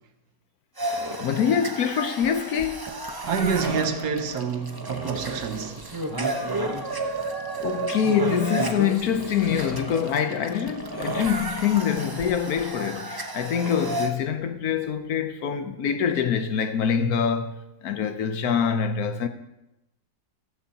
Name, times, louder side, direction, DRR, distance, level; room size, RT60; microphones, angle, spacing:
sound 1, 0.8-14.1, right 2 dB, 30° right, 0.4 m, -32 dB
voice 1, 1.2-3.0 5.0-5.1 6.1-6.2 7.6-19.3, left 7 dB, 65° left, 1.1 m, -25 dB
voice 2, 3.2-5.8, right 6 dB, 70° right, 1.4 m, -27 dB
14.0 x 13.5 x 2.8 m
omnidirectional pair, 1.8 m